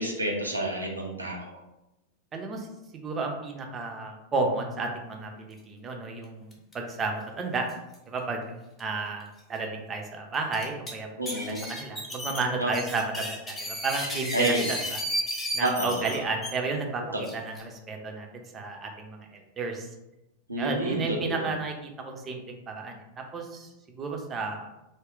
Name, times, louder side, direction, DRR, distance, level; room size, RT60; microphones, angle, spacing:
voice 1, 0.0-1.6 11.2-11.6 12.6-12.7 14.3-14.6 15.6-16.1 17.1-17.2 20.5-21.5, right 1 dB, 85° right, 0 dB, 0.5 m, -29 dB
voice 2, 2.3-2.7 3.0-7.7 8.1-8.5 8.8-11.1 11.5-15.0 15.5-17.0 17.3-19.9 20.6-23.7 24.0-24.7, right 3 dB, 25° right, 3 dB, 0.5 m, -32 dB
sound 1, 6.5-6.7 7.0-7.1 7.7-7.9 8.8-8.9 9.4-9.5 10.3-10.9 11.3-16.5 17.2-17.6, equal, 15° left, 0.7 m, -33 dB
2.3 x 2.1 x 3.5 m, 0.93 s
figure-of-eight pair, 90°, 0 cm